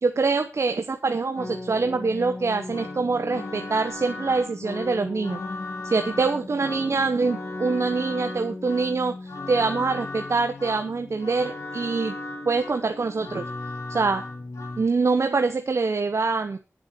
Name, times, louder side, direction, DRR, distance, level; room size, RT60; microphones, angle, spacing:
voice 1, 0.0-5.4 5.8-9.2 9.5-12.1 12.4-13.4 13.9-14.2 14.8-16.6, right 4 dB, 65° right, 7 dB, 1.1 m, -24 dB
sound 1, 1.4-14.8, left 2 dB, 75° left, 2.5 m, -36 dB
10.0 x 7.4 x 6.4 m, 0.32 s
wide cardioid pair, 65°, 5 cm